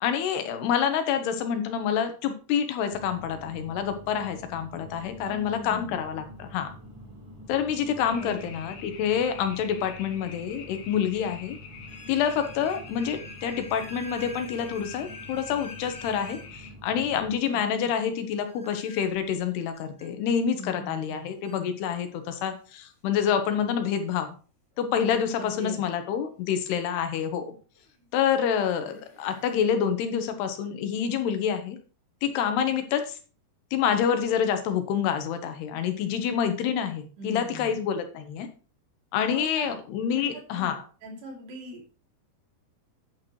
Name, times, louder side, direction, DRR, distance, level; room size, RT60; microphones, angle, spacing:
voice 1, 0.0-6.7 7.5-11.6 12.1-16.4 16.8-24.4 24.8-27.5 28.1-31.8 32.2-33.2 33.7-38.5 39.1-40.8, left 8 dB, 85° left, 7 dB, 3.3 m, -27 dB
sound 1, 2.9-17.3, left 1 dB, 15° right, 1.2 m, -47 dB
voice 2, 5.2-6.0 8.1-8.6 17.5-17.9 20.6-21.3 25.4-25.8 37.2-37.7 39.3-39.7 40.1-41.9, right 1 dB, 80° right, 0 dB, 4.8 m, -41 dB
sound 2, 8.0-16.7, left 6 dB, 65° left, 3.2 m, -46 dB
sound 3, 10.1-10.2 10.9-11.0 11.9-16.5 18.4-20.1 21.1-21.2 21.4-21.6 22.4-22.5 24.7-24.8 26.9-27.0 27.7-28.0 28.6-29.5, right 1 dB, 20° left, 0.8 m, -48 dB
10.5 x 9.0 x 3.1 m, 0.37 s
omnidirectional pair, 4.6 m